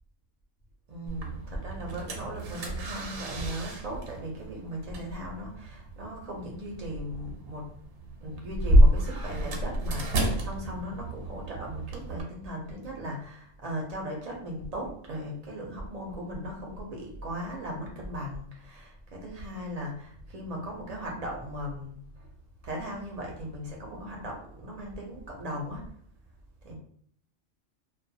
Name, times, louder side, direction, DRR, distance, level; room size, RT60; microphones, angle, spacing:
voice 1, 0.9-7.7 8.2-22.3 22.6-25.9 26.6-26.7, equal, 45° right, -1 dB, 0.5 m, -37 dB
sound 1, 1.1-12.2, equal, 80° right, 1.0 m, -29 dB
2.4 x 2.2 x 2.7 m, 0.63 s
omnidirectional pair, 1.4 m